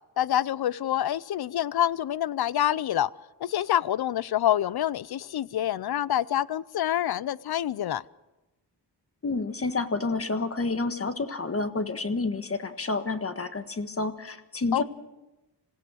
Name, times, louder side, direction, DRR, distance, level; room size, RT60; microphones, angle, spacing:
voice 1, 0.2-3.1 3.4-8.0 14.7-14.8, left 11 dB, 60° left, 0.6 m, -26 dB
voice 2, 9.2-14.8, left 3 dB, 30° left, 1.5 m, -29 dB
27.0 x 16.5 x 6.4 m
wide cardioid pair, 115°, 43 cm